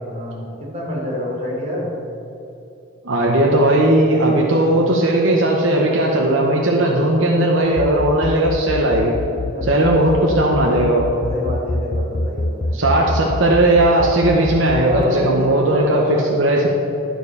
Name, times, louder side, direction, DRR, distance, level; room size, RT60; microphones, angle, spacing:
voice 1, 0.0-1.9 9.5-10.0 11.3-12.8 14.8-16.2, equal, 30° right, -4 dB, 2.3 m, -26 dB
voice 2, 3.0-9.2 9.6-11.1 12.7-16.7, right 1 dB, 65° right, -1 dB, 0.9 m, -17 dB
sound 1, 7.6-15.0, left 3 dB, 40° left, 0.3 m, -24 dB
12.0 x 4.6 x 6.7 m, 3.0 s
head